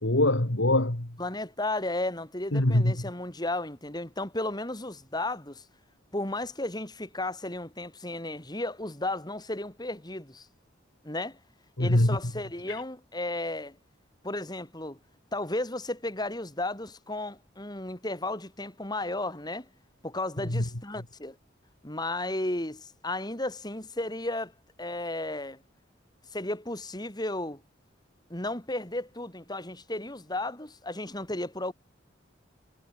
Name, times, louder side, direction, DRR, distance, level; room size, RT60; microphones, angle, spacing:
voice 1, 0.0-1.1 2.5-2.9 11.8-12.2 12.7-12.8 20.5-20.6, left 1 dB, 75° left, 2.6 m, -23 dB
voice 2, 1.2-5.7 6.1-10.5 11.0-11.4 11.8-13.8 14.2-15.0 15.3-19.7 20.0-21.4 21.8-24.5 24.8-25.6 26.3-27.6 28.3-31.7, left 2 dB, 20° left, 4.1 m, -34 dB
head